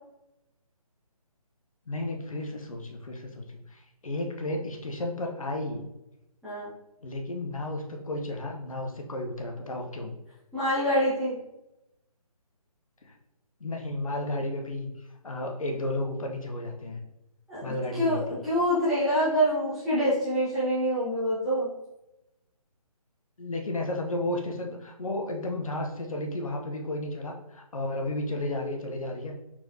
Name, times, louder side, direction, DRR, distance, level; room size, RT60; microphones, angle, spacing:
voice 1, 1.9-5.9 7.0-10.1 13.0-13.1 13.6-14.9 15.2-17.0 17.6-18.2 23.4-29.3, left 1 dB, 60° left, 2 dB, 1.0 m, -33 dB
voice 2, 10.5-11.4 17.5-21.7, equal, ahead, -14 dB, 0.8 m, -26 dB
4.4 x 4.3 x 2.8 m, 0.90 s
figure-of-eight pair, 150°, 20 cm